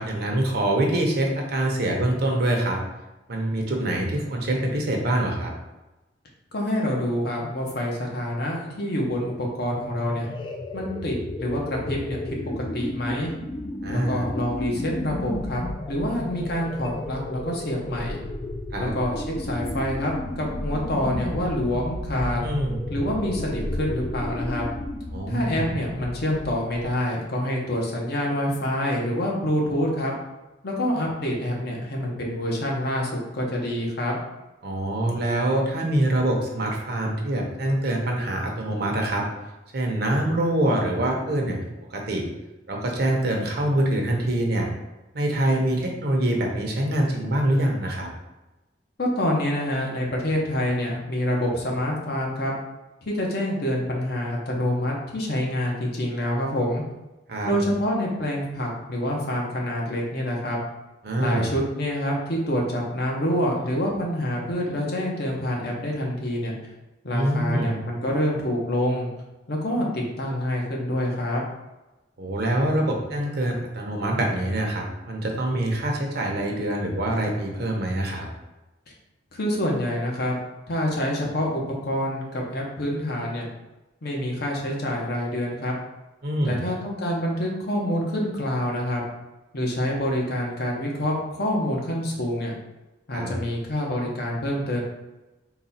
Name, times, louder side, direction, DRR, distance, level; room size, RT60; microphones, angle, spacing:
voice 1, 0.0-2.8 3.3-5.5 13.8-14.2 18.7-18.9 22.4-22.8 25.1-25.7 34.6-39.2 39.7-41.6 41.9-42.3 42.7-44.7 45.1-48.1 57.3-57.5 61.0-61.5 67.1-67.7 72.2-78.3 86.2-86.6 93.1-93.3, right 1 dB, 55° right, 1 dB, 0.7 m, -25 dB
voice 2, 6.5-10.3 10.7-13.3 13.9-18.2 18.8-22.4 22.9-24.7 25.3-30.1 30.6-34.2 49.0-52.5 53.0-56.8 57.4-60.6 61.2-66.5 67.0-69.1 69.5-71.4 79.3-80.4 80.7-83.5 84.0-85.7 86.4-89.1 89.5-92.5 93.1-94.8, left 1 dB, 55° left, -1 dB, 0.9 m, -27 dB
sound 1, 9.6-27.1, left 1 dB, 25° left, 0.3 m, -33 dB
4.0 x 2.3 x 4.0 m, 1.1 s
head